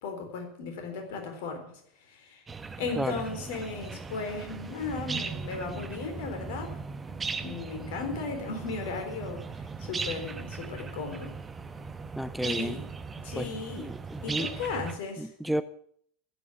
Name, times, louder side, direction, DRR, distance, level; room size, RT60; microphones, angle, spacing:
voice 1, 0.0-1.7 2.1-2.4 2.8-6.7 7.4-11.4 12.4-12.9 13.2-13.9 14.2-15.5, left 4 dB, 55° left, 4 dB, 3.9 m, -36 dB
sound 1, 2.5-15.0, right 4 dB, 20° right, 1.1 m, -38 dB
voice 2, 12.2-12.8 13.4-14.5 15.2-15.6, right 1 dB, 5° right, 14 dB, 0.5 m, -32 dB
12.0 x 11.0 x 8.7 m, 0.65 s
figure-of-eight pair, 80°, 0 cm